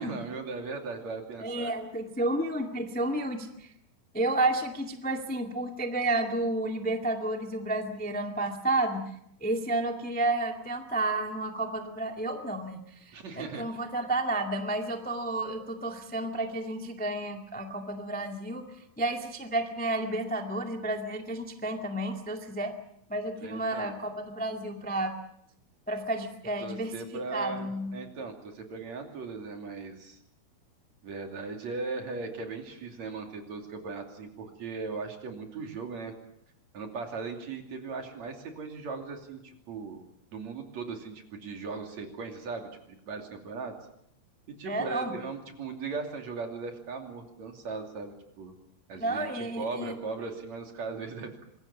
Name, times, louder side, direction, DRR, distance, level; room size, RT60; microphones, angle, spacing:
voice 1, 0.0-1.7 13.1-13.6 23.4-24.0 26.6-30.2 31.0-36.1 36.7-40.0 40.3-43.8 44.5-48.5 48.9-51.4, right 4 dB, 50° right, 4 dB, 3.8 m, -38 dB
voice 2, 1.4-3.7 4.1-9.1 9.4-12.8 13.0-18.6 19.0-22.7 23.1-25.1 25.9-26.9 27.3-27.9 44.6-45.1 49.0-49.9, right 2 dB, 10° left, 4 dB, 0.4 m, -31 dB
25.5 x 21.5 x 7.2 m, 0.74 s
omnidirectional pair, 4.4 m